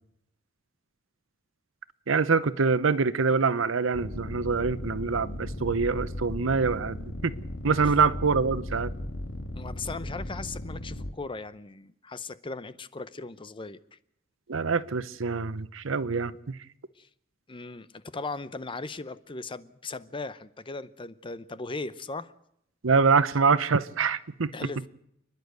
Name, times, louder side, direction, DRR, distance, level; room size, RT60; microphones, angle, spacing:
voice 1, 2.1-7.3 7.6-8.9 14.5-16.6 22.8-24.5, right 5 dB, 85° right, 0.8 m, -25 dB
sound 1, 3.9-11.1, left 1 dB, 75° left, 2.0 m, -36 dB
voice 2, 9.5-14.0 17.0-17.1 17.5-22.3 24.5-24.9, left 3 dB, 25° left, 0.7 m, -38 dB
30.0 x 11.0 x 8.1 m
head